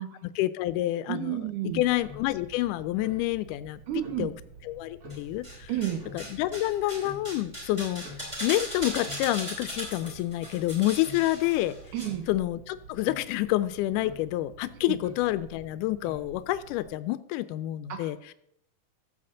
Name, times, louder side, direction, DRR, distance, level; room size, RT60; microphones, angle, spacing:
voice 1, 0.0-3.8 4.2-4.3 4.6-5.7 6.1-8.0 8.4-11.8 12.3-18.3, left 15 dB, 80° left, 14 dB, 2.0 m, -28 dB
voice 2, 1.1-1.8 3.9-4.3 5.7-6.0 11.9-12.3 14.8-15.0 17.9-18.1, right 11 dB, 70° right, 7 dB, 2.3 m, -31 dB
Tick-tock, 1.7-16.9, equal, 40° right, 1.3 m, -48 dB
sound 1, 5.1-5.9 6.2-12.0 12.3-12.4, equal, 10° right, 3.6 m, -38 dB
14.0 x 7.7 x 3.8 m, 0.74 s
omnidirectional pair, 4.0 m